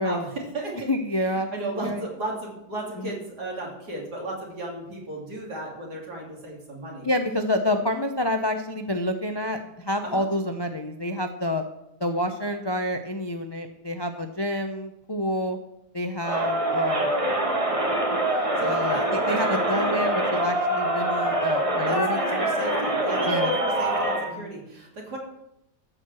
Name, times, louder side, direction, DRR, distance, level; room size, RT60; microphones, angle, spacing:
voice 1, 0.0-0.9 1.2-7.1 10.0-10.3 18.3-19.9 21.9-25.2, right 2 dB, 75° right, -2 dB, 3.5 m, -35 dB
voice 2, 0.9-2.0 3.0-3.1 7.0-11.6 12.0-15.6 15.9-17.2 18.6-22.5 23.3-23.5 24.3-24.5, left 1 dB, 40° left, 6 dB, 0.3 m, -28 dB
Crowd, 16.2-24.3, right 1 dB, 20° right, 1.3 m, -24 dB
14.0 x 4.7 x 7.5 m, 0.84 s
omnidirectional pair, 1.7 m